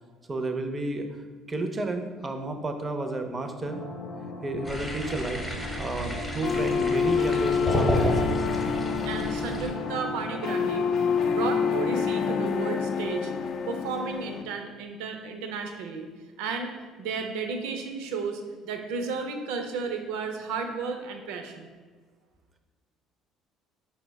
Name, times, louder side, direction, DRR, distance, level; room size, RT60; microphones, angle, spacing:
voice 1, 0.3-1.1 1.5-3.8 4.4-5.4 5.8-8.5, right 2 dB, 25° right, 6 dB, 0.5 m, -31 dB
sound 1, 3.6-12.4, left 1 dB, 85° left, 0.8 m, -39 dB
sound 2, 4.6-9.7, equal, 10° left, 0.8 m, -31 dB
sound 3, 6.4-14.4, left 6 dB, 55° left, 0.3 m, -27 dB
voice 2, 9.0-10.9 11.3-13.3 13.7-16.1 16.4-21.7, right 5 dB, 85° right, 4 dB, 0.5 m, -33 dB
4.3 x 2.1 x 4.5 m, 1.4 s
supercardioid pair, 95°, 0 cm